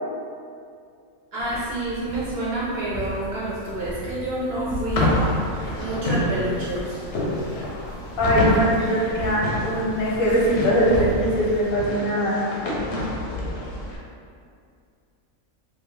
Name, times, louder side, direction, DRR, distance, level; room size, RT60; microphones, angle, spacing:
voice 1, 1.3-5.1 5.6-6.9, right 1 dB, 60° right, -7 dB, 0.7 m, -28 dB
sound 1, 1.4-11.7, right 1 dB, 40° right, 0.3 m, -37 dB
sound 2, 4.9-14.0, left 1 dB, 65° left, 0.8 m, -27 dB
voice 2, 8.2-12.4, equal, 90° left, -5 dB, 1.2 m, -21 dB
2.7 x 2.3 x 3.2 m, 2.3 s
omnidirectional pair, 1.4 m